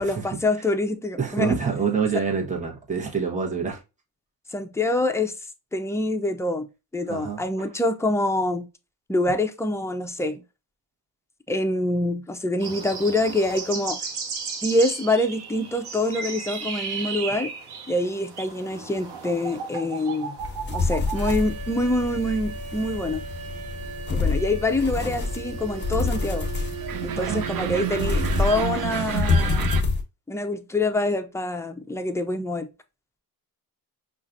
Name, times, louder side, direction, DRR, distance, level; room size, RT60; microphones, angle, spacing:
voice 1, 0.0-1.5 2.1-2.2 4.5-5.3 5.7-6.7 6.9-8.7 9.1-10.4 11.5-14.0 14.6-17.5 17.9-20.3 20.7-23.2 24.1-26.5 27.0-29.7 30.3-32.7, left 2 dB, 5° left, 0.5 m, -25 dB
voice 2, 1.2-3.8 7.1-7.7 27.1-27.5, right 5 dB, 20° right, 1.1 m, -27 dB
sound 1, 12.6-21.4, right 5 dB, 75° right, 1.1 m, -34 dB
sound 2, 20.4-30.0, left 3 dB, 25° left, 1.1 m, -27 dB
sound 3, 21.1-29.8, right 8 dB, 60° right, 0.6 m, -33 dB
5.5 x 2.5 x 2.5 m
cardioid pair, 105°, 40 cm